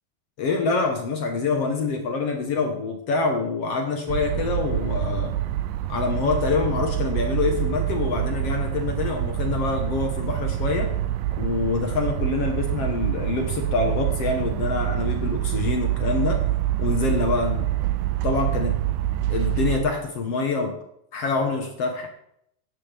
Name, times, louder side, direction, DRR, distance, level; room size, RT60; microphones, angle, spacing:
voice 1, 0.4-5.3 5.9-10.9 11.3-16.4 16.8-17.7 18.2-18.8 19.3-20.8 21.1-22.1, left 4 dB, 55° left, 4 dB, 1.9 m, -26 dB
sound 1, 4.1-19.8, right 13 dB, 80° right, 2.1 m, -26 dB
15.5 x 11.0 x 3.5 m, 0.73 s
omnidirectional pair, 3.9 m